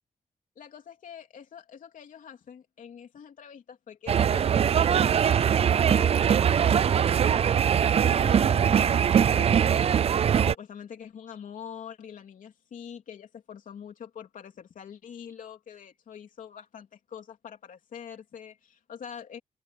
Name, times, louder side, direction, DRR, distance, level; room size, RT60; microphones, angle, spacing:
voice 1, 0.5-7.1 8.0-10.0 10.4-19.4, left 8 dB, 80° left, 3.3 m, -44 dB
sound 1, 4.1-10.5, right 8 dB, 50° right, 0.4 m, -22 dB
wide cardioid pair, 170°, 13 cm